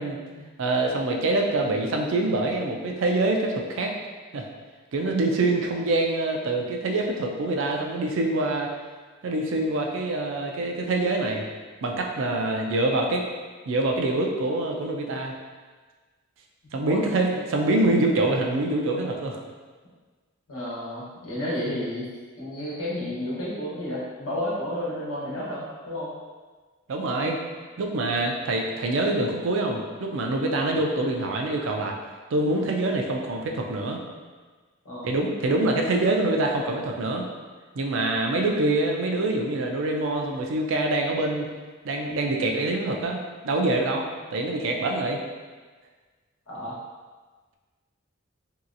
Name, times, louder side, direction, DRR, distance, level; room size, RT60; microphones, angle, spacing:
voice 1, 0.0-0.4 16.8-17.0 17.3-17.4 20.5-22.1 22.4-26.1 30.7-30.8 34.8-35.1 46.5-46.8, left 1 dB, 90° left, -7 dB, 1.0 m, -32 dB
voice 2, 0.6-3.9 4.3-4.5 4.9-8.7 9.2-11.5 11.8-13.3 13.7-15.3 16.7-19.4 26.9-27.4 27.8-31.9 32.3-34.0 35.0-37.3 37.8-41.5 41.8-44.1 44.3-45.2, right 2 dB, 65° right, 1 dB, 0.4 m, -25 dB
3.0 x 2.8 x 2.5 m, 1.4 s
head